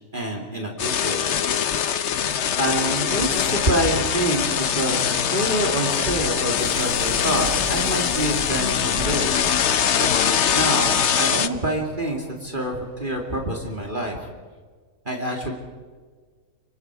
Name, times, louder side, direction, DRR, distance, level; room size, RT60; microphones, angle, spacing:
voice 1, 0.1-1.3 2.6-9.4 10.0-10.1 10.5-14.3 15.0-15.5, right 1 dB, 30° right, 1 dB, 2.6 m, -26 dB
sound 1, 0.8-11.5, left 8 dB, 50° left, 0.9 m, -23 dB
sound 2, 2.0-13.9, right 2 dB, 80° right, 5.4 m, -40 dB
28.0 x 25.0 x 4.8 m, 1.5 s
omnidirectional pair, 1.9 m